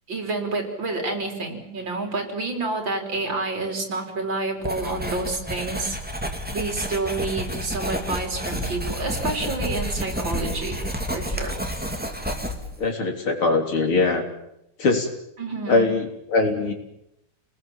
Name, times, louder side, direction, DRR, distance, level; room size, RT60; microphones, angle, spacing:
voice 1, 0.1-6.0 6.5-10.8 11.1-11.6 15.4-15.9, right 3 dB, 60° right, 3 dB, 4.6 m, -29 dB
Writing, 4.6-12.8, equal, 5° right, 2.4 m, -30 dB
voice 2, 12.8-14.2 14.8-15.1 15.7-16.7, left 3 dB, 80° left, 3 dB, 4.3 m, -21 dB
29.0 x 20.0 x 7.4 m, 0.82 s
omnidirectional pair, 2.3 m